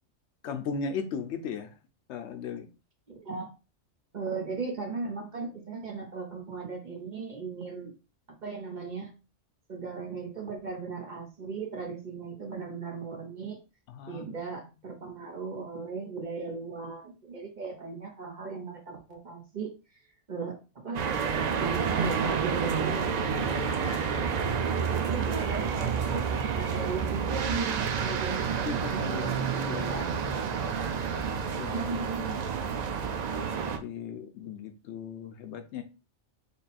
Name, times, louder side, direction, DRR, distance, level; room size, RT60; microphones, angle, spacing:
voice 1, 0.4-1.8 2.1-2.7 13.9-14.3 28.6-29.9 31.5-31.9 33.6-35.8, left 6 dB, 70° left, 0.8 m, -37 dB
voice 2, 3.1-3.5 4.1-7.9 8.4-9.1 9.7-13.6 14.1-19.7 20.3-20.6 20.8-21.0 21.3-24.5 24.9-26.2 26.5-30.3 31.7-32.4, right 4 dB, 40° right, 0.9 m, -37 dB
sound 1, 20.9-33.8, right 6 dB, 75° right, 0.3 m, -29 dB
3.6 x 2.3 x 4.1 m
omnidirectional pair, 1.3 m